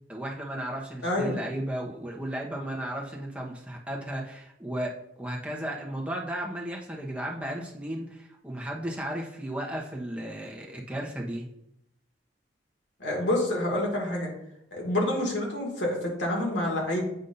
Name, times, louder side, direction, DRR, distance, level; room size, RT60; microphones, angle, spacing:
voice 1, 0.1-11.5, right 1 dB, 5° right, -1 dB, 0.9 m, -34 dB
voice 2, 1.0-1.4 13.0-14.3 14.7-17.0, left 1 dB, 80° left, -1 dB, 2.0 m, -27 dB
7.9 x 2.7 x 5.4 m, 0.80 s
head